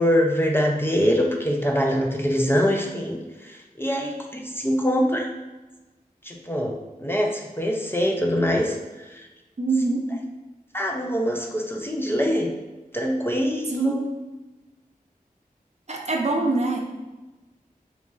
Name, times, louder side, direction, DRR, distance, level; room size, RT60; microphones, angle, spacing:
voice 1, 0.0-5.3 6.2-8.8 9.1-9.2 10.7-12.5 12.9-14.0, equal, 15° left, 0 dB, 0.4 m, -24 dB
voice 2, 9.6-10.0 13.7-14.0 15.9-16.8, right 3 dB, 50° right, 0 dB, 0.6 m, -23 dB
3.0 x 2.4 x 3.8 m, 1.1 s
wide cardioid pair, 50°, 15 cm